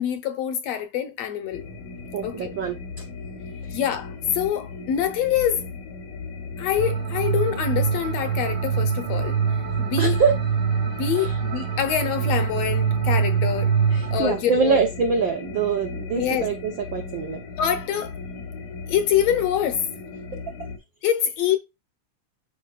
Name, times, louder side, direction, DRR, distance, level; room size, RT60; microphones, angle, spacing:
voice 1, 0.0-1.6 2.2-2.5 3.7-5.7 6.6-9.4 9.8-10.2 10.9-13.7 14.1-14.8 16.2-16.5 17.6-18.1 18.9-19.8 21.0-21.6, left 9 dB, 70° left, 1.7 m, -25 dB
sound 1, 1.5-20.8, left 4 dB, 85° left, 2.7 m, -37 dB
voice 2, 2.1-2.7 10.0-10.3 13.9-17.4, right 5 dB, 80° right, 1.0 m, -24 dB
sound 2, 6.8-14.2, right 6 dB, 65° right, 1.4 m, -24 dB
9.8 x 4.5 x 2.3 m
omnidirectional pair, 3.4 m